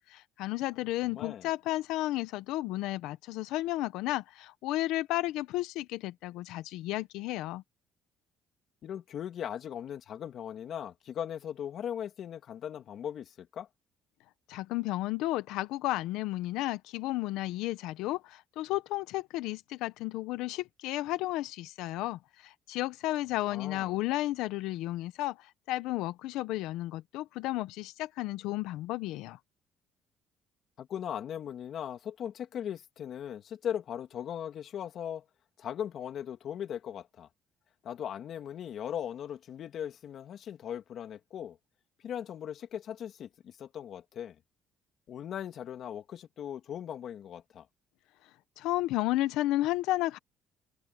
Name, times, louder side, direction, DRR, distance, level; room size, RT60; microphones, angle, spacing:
voice 1, 0.1-7.6 14.5-29.4 48.6-50.2, left 17 dB, 80° left, 0.9 m, -33 dB
voice 2, 1.0-1.5 8.8-13.7 23.5-24.0 30.8-35.2 35.6-37.3 37.8-41.6 42.0-44.4 45.1-47.7, left 9 dB, 55° left, 2.7 m, -39 dB
cardioid pair, 100°, 0 cm